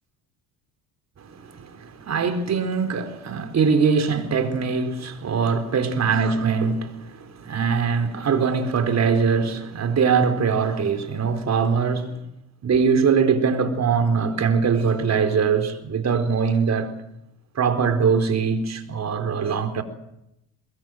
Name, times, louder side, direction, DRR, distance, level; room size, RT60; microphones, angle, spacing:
voice 1, 1.2-12.2 12.6-16.9 17.6-19.8, right 5 dB, 45° right, 4.2 m, -22 dB
23.5 x 21.5 x 7.8 m
supercardioid pair, 90°, 38 cm